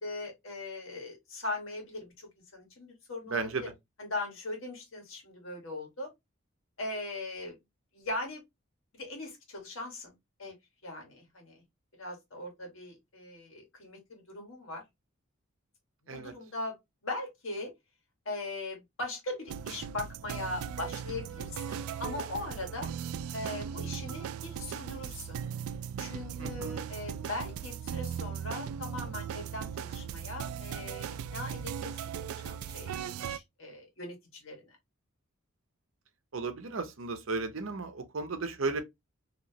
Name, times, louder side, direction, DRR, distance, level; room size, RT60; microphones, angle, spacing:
voice 1, 0.0-3.7 4.0-6.1 6.8-7.5 7.9-8.4 8.9-10.1 10.4-10.5 10.8-11.6 12.0-14.8 16.1-16.7 17.0-17.7 18.2-22.9 23.3-25.4 26.0-31.1 31.3-31.9 32.2-34.6, left 2 dB, 70° left, 1.5 m, -40 dB
voice 2, 3.3-3.6 16.1-16.3 26.4-26.7 36.3-38.8, right 3 dB, 70° right, 0.7 m, -34 dB
sound 1, 19.5-33.4, right 8 dB, 90° right, 0.3 m, -38 dB
3.0 x 2.9 x 2.8 m
head